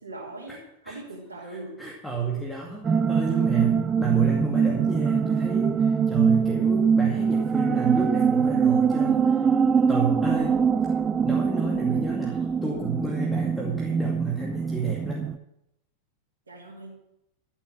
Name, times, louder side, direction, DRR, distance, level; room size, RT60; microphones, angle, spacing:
voice 1, 0.0-1.8 16.5-16.9, right 2 dB, 75° right, -6 dB, 3.3 m, -40 dB
voice 2, 1.4-9.4 9.9-10.6 11.2-15.3, right 4 dB, 5° left, -2 dB, 2.3 m, -31 dB
sound 1, 2.8-15.4, right 6 dB, 20° right, 0.5 m, -23 dB
13.0 x 7.9 x 7.7 m, 0.85 s
figure-of-eight pair, 90°, 0 cm